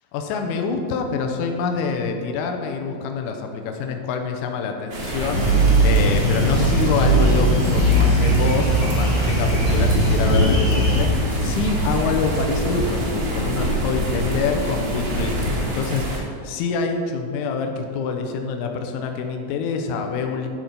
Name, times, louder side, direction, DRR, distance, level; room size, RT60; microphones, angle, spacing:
voice 1, 0.1-20.5, left 5 dB, 90° left, 4 dB, 1.7 m, -26 dB
sound 1, 4.9-16.2, equal, 50° right, 1.3 m, -25 dB
sound 2, 5.3-11.0, right 1 dB, 70° left, 3.8 m, -19 dB
11.5 x 4.3 x 5.3 m, 2.3 s
omnidirectional pair, 4.2 m